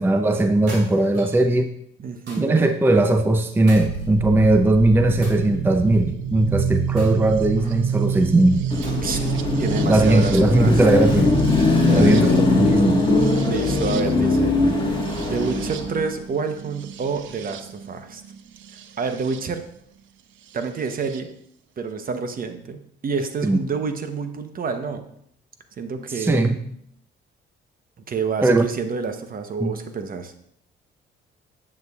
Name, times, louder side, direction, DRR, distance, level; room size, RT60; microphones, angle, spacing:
voice 1, 0.0-1.7 2.4-8.6 9.9-11.3 11.9-12.3 12.6-13.0 23.4-23.6 26.1-26.6 28.4-28.7 29.6-29.8, right 2 dB, 10° right, 7 dB, 0.5 m, -18 dB
sound 1, 0.7-1.4 2.3-2.7 3.7-4.5 5.2-6.0 7.0-7.8 8.8-9.4, right 1 dB, 60° right, 3.2 m, -41 dB
voice 2, 2.0-2.6 9.0-9.2 9.6-10.8 11.7-12.4 12.8-12.9 13.4-18.2 19.0-19.6 20.5-21.3 21.8-25.1 25.8-26.4 28.1-30.3, right 4 dB, 45° right, 8 dB, 0.9 m, -28 dB
sound 2, 3.7-19.4 20.6-21.2, right 8 dB, 80° right, 0.6 m, -29 dB
Car passing by / Traffic noise roadway noise / Engine, 8.7-16.0, left 3 dB, 25° left, 1.5 m, -21 dB
9.2 x 7.4 x 2.4 m, 0.69 s
cardioid pair, 90°, 20 cm